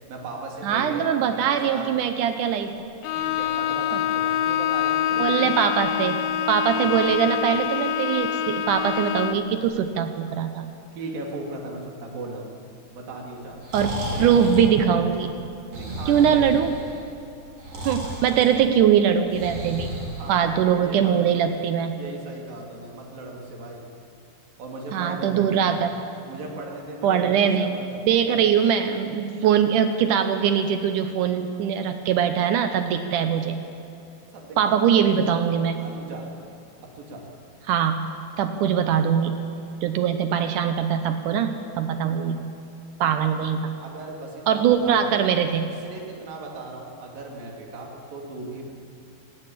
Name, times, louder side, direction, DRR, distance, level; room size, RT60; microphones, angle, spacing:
voice 1, 0.1-1.1 1.3-1.9 3.1-5.3 11.0-12.4 12.9-13.6 14.1-14.5 15.8-16.4 20.2-21.5 21.9-23.8 24.6-25.8 26.3-28.4 34.3-35.1 35.8-36.3 36.8-37.3 42.9-43.0 43.8-45.1 45.8-48.7, right 2 dB, 60° right, 0 dB, 4.3 m, -37 dB
voice 2, 0.6-2.8 3.9-4.0 5.1-6.2 6.5-10.7 13.7-15.4 16.1-16.7 17.9-19.9 20.3-22.0 24.9-25.9 27.0-27.7 28.1-33.6 34.6-35.8 37.7-38.0 38.4-39.4 39.8-42.4 43.0-43.8 44.5-45.7, right 8 dB, 80° right, 8 dB, 1.8 m, -22 dB
Bowed string instrument, 3.0-9.5, left 10 dB, 80° left, 2.4 m, -26 dB
Breathing, 13.5-20.8, right 1 dB, 45° right, 4.9 m, -34 dB
18.0 x 17.5 x 8.5 m, 2.7 s
omnidirectional pair, 4.7 m